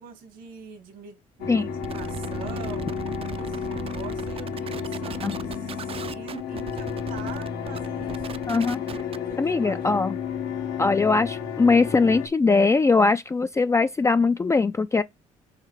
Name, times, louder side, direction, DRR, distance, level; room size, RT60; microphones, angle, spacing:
voice 1, 0.0-2.9 3.4-8.4 9.1-9.9, right 6 dB, 80° right, 2.0 m, -44 dB
sound 1, 1.4-12.3, left 6 dB, 80° left, 1.4 m, -32 dB
sound 2, 1.8-9.3, right 8 dB, 40° right, 0.5 m, -38 dB
voice 2, 8.5-8.8 9.4-10.1 10.8-15.0, left 4 dB, 20° left, 0.4 m, -21 dB
6.5 x 3.2 x 4.8 m
supercardioid pair, 70°, 15 cm